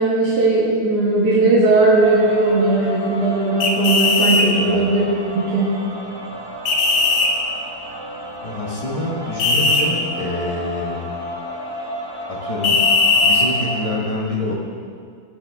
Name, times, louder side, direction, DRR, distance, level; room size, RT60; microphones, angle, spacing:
voice 1, 0.0-5.8, right 2 dB, 55° right, -8 dB, 2.0 m, -17 dB
sound 1, 2.0-13.8, equal, 20° right, 0.8 m, -32 dB
sound 2, 3.6-4.5 6.7-7.3 9.4-9.8 12.6-13.5, left 3 dB, 75° left, 1.8 m, -17 dB
voice 2, 8.4-11.1 12.3-12.9 13.2-14.5, left 2 dB, 20° left, -4 dB, 1.1 m, -26 dB
17.5 x 6.9 x 3.5 m, 2.1 s
omnidirectional pair, 2.2 m